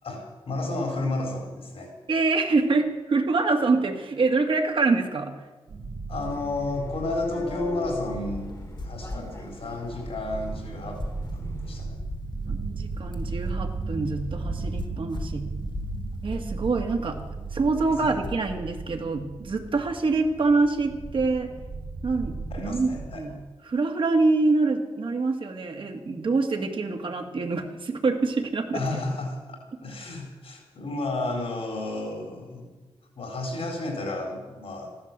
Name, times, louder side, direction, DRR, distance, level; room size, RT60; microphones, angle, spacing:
voice 1, 0.0-1.9 6.1-8.6 8.8-11.0 11.3-12.0 18.0-18.1 22.5-23.2 28.7-32.7 33.2-34.9, left 2 dB, 75° left, 2 dB, 4.2 m, -32 dB
voice 2, 2.1-5.3 12.5-15.5 16.2-17.2 17.5-21.5 22.0-22.9 23.2-23.4 23.7-28.8, right 3 dB, 60° right, 4 dB, 2.0 m, -25 dB
sound 1, 5.7-23.1, right 4 dB, 80° right, 2.4 m, -36 dB
sound 2, 6.2-11.8, left 1 dB, 30° left, 2.0 m, -43 dB
sound 3, 7.9-18.6, left 3 dB, 50° left, 1.2 m, -40 dB
15.0 x 12.0 x 7.5 m, 1.2 s
wide cardioid pair, 130°, 10 cm